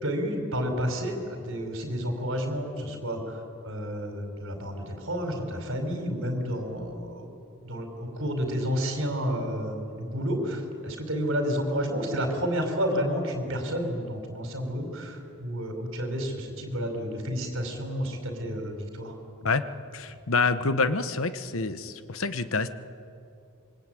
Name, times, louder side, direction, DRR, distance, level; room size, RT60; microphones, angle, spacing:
voice 1, 0.0-7.3 7.6-19.1, equal, 60° right, 4 dB, 5.0 m, -30 dB
voice 2, 19.9-22.7, left 4 dB, 65° left, 11 dB, 1.1 m, -27 dB
25.5 x 24.0 x 9.1 m, 2.6 s
head